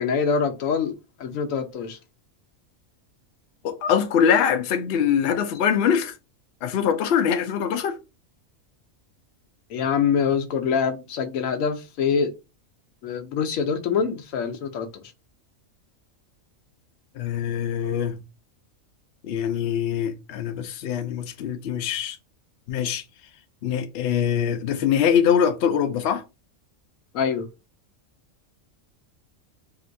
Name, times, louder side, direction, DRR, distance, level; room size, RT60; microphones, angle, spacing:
voice 1, 0.0-2.0 9.7-12.3 13.0-15.0 27.1-27.5, left 6 dB, 80° left, 1.0 m, -25 dB
voice 2, 3.6-6.2 6.6-8.0 17.2-18.2 19.2-22.2 22.7-23.0 23.6-26.2, left 8 dB, 65° left, 0.7 m, -23 dB
3.7 x 2.5 x 2.6 m
omnidirectional pair, 1.4 m